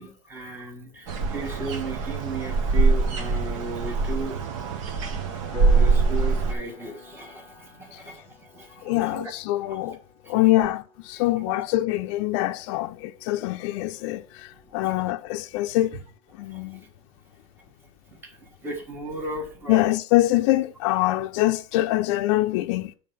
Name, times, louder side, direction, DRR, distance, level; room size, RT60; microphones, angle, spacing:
voice 1, 0.0-4.7 5.7-9.3 9.6-9.9 10.2-10.7 11.1-11.4 14.8-14.9 16.4-16.9 18.2-19.9, right 2 dB, 15° right, 1.3 m, -36 dB
sound 1, 1.1-6.5, right 4 dB, 70° right, 1.2 m, -23 dB
Piano, 5.5-15.9, left 5 dB, 15° left, 1.7 m, -46 dB
voice 2, 8.8-10.0 10.3-10.8 11.1-16.0 16.4-16.8 19.7-22.9, left 17 dB, 60° left, 0.4 m, -24 dB
7.5 x 3.4 x 5.3 m
supercardioid pair, 160°, 17 cm